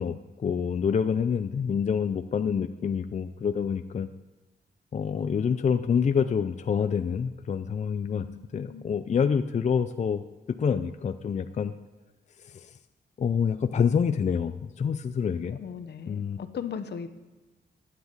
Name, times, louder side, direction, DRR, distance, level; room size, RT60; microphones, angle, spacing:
voice 1, 0.0-4.1 4.9-8.3 8.5-11.7 12.4-12.8 13.2-15.6 16.1-16.4, left 6 dB, 40° left, 9 dB, 0.5 m, -27 dB
voice 2, 15.5-17.1, left 7 dB, 70° left, 10 dB, 1.1 m, -37 dB
13.5 x 9.7 x 8.1 m, 1.1 s
wide cardioid pair, 125°, 18 cm